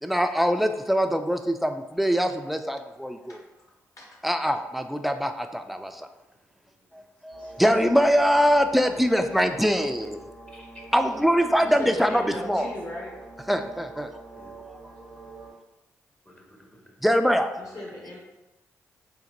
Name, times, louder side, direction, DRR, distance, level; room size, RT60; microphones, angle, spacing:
voice 1, 0.0-3.4 4.2-6.1 7.2-10.2 10.9-12.7 13.5-14.1 17.0-17.5, equal, ahead, 7 dB, 0.3 m, -23 dB
sound 1, 7.3-15.5, right 3 dB, 85° right, 0.8 m, -46 dB
voice 2, 10.5-10.8 11.6-12.0 14.4-14.6 16.3-17.0 17.7-17.8, left 1 dB, 20° left, 0 dB, 0.7 m, -52 dB
voice 3, 11.6-13.2 17.6-18.2, left 1 dB, 50° left, -3 dB, 1.3 m, -37 dB
4.0 x 2.5 x 2.5 m, 1.0 s
hypercardioid pair, 40°, 7 cm